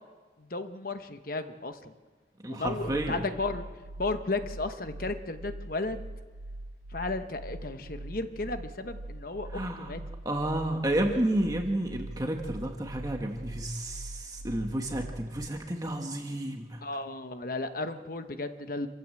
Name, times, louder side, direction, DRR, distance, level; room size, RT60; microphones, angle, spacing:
voice 1, 0.4-1.9 2.5-3.6 4.0-6.0 6.9-10.0 16.8-18.9, left 3 dB, 50° left, 8 dB, 1.1 m, -34 dB
voice 2, 2.4-3.2 9.5-9.9 10.2-16.8, right 1 dB, 20° right, 3 dB, 1.5 m, -31 dB
sound 1, 2.8-15.5, right 1 dB, 90° right, 1.1 m, -43 dB
26.5 x 15.0 x 7.7 m, 1.4 s
head